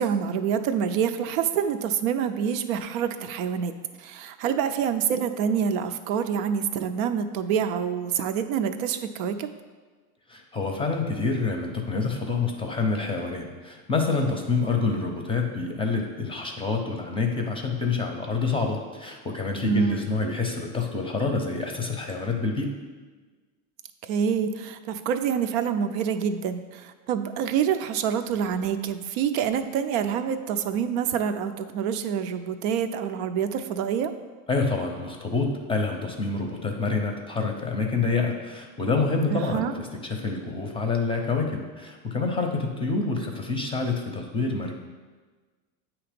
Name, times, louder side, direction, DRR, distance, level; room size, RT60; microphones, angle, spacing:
voice 1, 0.0-3.7 4.0-9.5 19.6-20.0 24.1-34.1 39.3-39.7, right 7 dB, 65° right, 9 dB, 0.6 m, -26 dB
voice 2, 10.3-22.7 34.5-39.7 40.0-44.8, left 4 dB, 10° left, 2 dB, 0.6 m, -27 dB
8.6 x 3.0 x 5.1 m, 1.4 s
supercardioid pair, 120°, 45 cm